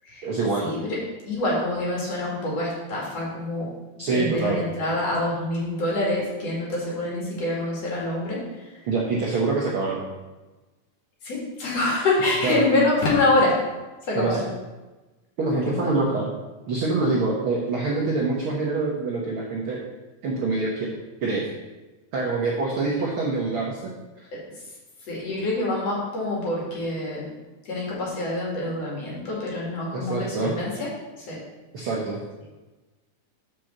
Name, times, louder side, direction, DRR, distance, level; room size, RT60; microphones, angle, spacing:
voice 1, 0.2-0.7 4.0-4.6 8.8-10.0 12.4-12.6 14.1-14.5 15.4-16.3 16.7-19.8 20.2-20.9 21.2-21.5 22.1-24.3 29.9-30.6 31.7-32.2, right 3 dB, 65° right, -3 dB, 1.3 m, -25 dB
voice 2, 1.3-3.7 4.1-8.4 11.2-13.5 14.1-14.5 15.6-15.9 25.1-27.3 27.7-30.9 31.3-31.4, left 2 dB, 55° left, -5 dB, 3.0 m, -25 dB
6.0 x 5.2 x 6.5 m, 1.2 s
omnidirectional pair, 3.7 m